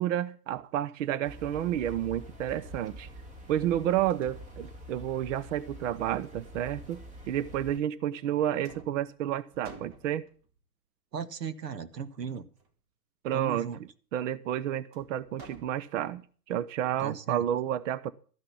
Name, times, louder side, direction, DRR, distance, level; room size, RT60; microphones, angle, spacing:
voice 1, 0.0-3.1 3.5-10.3 13.2-13.7 14.1-16.2 16.5-18.1, right 11 dB, 50° right, 0.8 m, -30 dB
sound 1, 1.2-7.8, equal, 15° right, 1.7 m, -46 dB
sound 2, 4.1-5.2 5.9-7.0 7.9-8.3 8.6-10.6 12.3-12.8 14.9-16.3, right 3 dB, 35° right, 2.1 m, -53 dB
voice 2, 11.1-12.5 13.3-13.8 17.0-17.5, right 6 dB, 90° right, 1.4 m, -37 dB
13.0 x 6.0 x 8.3 m
hypercardioid pair, 135°, 48 cm